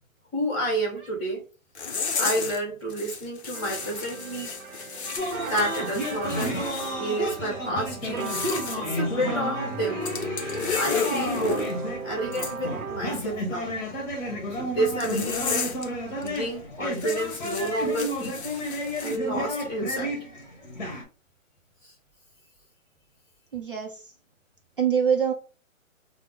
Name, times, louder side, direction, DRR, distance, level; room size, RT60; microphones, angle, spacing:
voice 1, 0.3-1.4 2.2-4.6 5.3-6.6 6.9-8.3 8.7-10.0 10.7-11.7 12.0-13.7 14.6-15.7 16.2-18.4 19.0-20.1 21.8-21.9, right 1 dB, 15° left, 1.3 m, -30 dB
sound 1, 1.8-2.6 2.9-7.0 8.1-8.8 10.0-11.7 12.3-12.5 15.0-15.9 16.2-16.4 16.9-19.2, left 5 dB, 50° left, 0.6 m, -33 dB
sound 2, 3.5-13.0, right 6 dB, 80° right, 0.7 m, -37 dB
sound 3, 5.2-21.0, equal, 35° left, 1.2 m, -32 dB
voice 2, 23.5-24.0 24.8-25.3, right 7 dB, 40° right, 0.5 m, -25 dB
3.5 x 2.1 x 3.5 m
hypercardioid pair, 160°, 42 cm